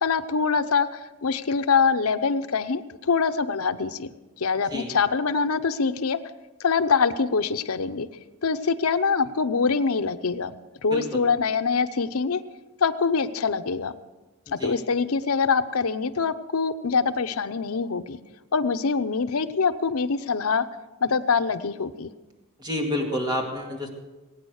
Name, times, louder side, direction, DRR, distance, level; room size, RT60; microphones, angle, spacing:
voice 1, 0.0-4.1 4.4-6.2 6.6-8.1 8.4-10.5 10.8-12.4 12.8-13.9 14.5-18.2 18.5-20.7 21.0-22.1, left 5 dB, 85° left, 10 dB, 0.8 m, -24 dB
voice 2, 10.9-11.2 14.5-14.8 22.6-23.9, left 1 dB, 20° right, 1 dB, 2.1 m, -29 dB
20.5 x 9.2 x 6.5 m, 1.2 s
head